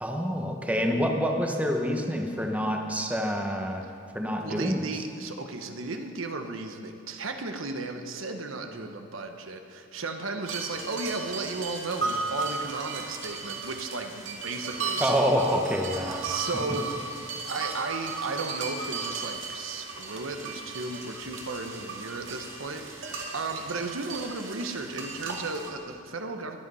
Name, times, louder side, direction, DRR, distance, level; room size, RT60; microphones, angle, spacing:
voice 1, 0.0-3.8 4.1-4.8 15.0-16.2, equal, 5° right, 2 dB, 1.2 m, -27 dB
voice 2, 4.4-15.4 16.2-16.9 17.3-26.6, right 3 dB, 85° right, 5 dB, 1.1 m, -35 dB
sound 1, 10.5-25.7, right 4 dB, 70° right, 2.1 m, -36 dB
22.0 x 8.3 x 5.6 m, 2.4 s
head